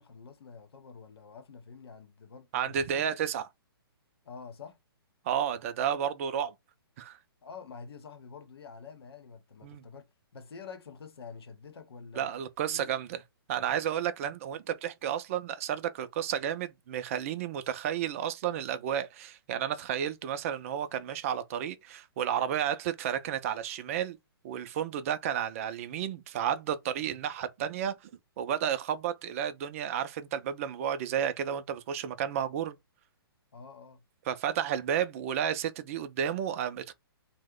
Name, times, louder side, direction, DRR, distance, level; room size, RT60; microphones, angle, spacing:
voice 1, 0.0-3.1 4.2-4.8 7.4-12.3 12.7-12.9 33.5-34.0, left 5 dB, 80° left, 0.8 m, -48 dB
voice 2, 2.5-3.5 5.3-6.5 7.0-7.2 9.6-9.8 12.1-13.2 13.5-24.2 24.4-28.1 28.4-32.8 34.3-36.9, right 9 dB, 35° right, 0.4 m, -32 dB
2.8 x 2.1 x 3.6 m
hypercardioid pair, 150°, 13 cm